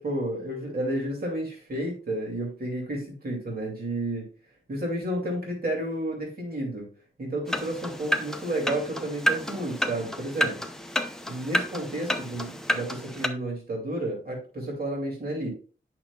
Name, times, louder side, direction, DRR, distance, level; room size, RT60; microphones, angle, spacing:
voice 1, 0.0-4.3 4.7-6.9 7.2-10.6 11.3-15.5, right 1 dB, 45° right, -2 dB, 2.6 m, -31 dB
sound 1, 7.5-13.3, equal, ahead, 0.7 m, -30 dB
9.0 x 5.9 x 2.3 m, 0.38 s
wide cardioid pair, 125°, 21 cm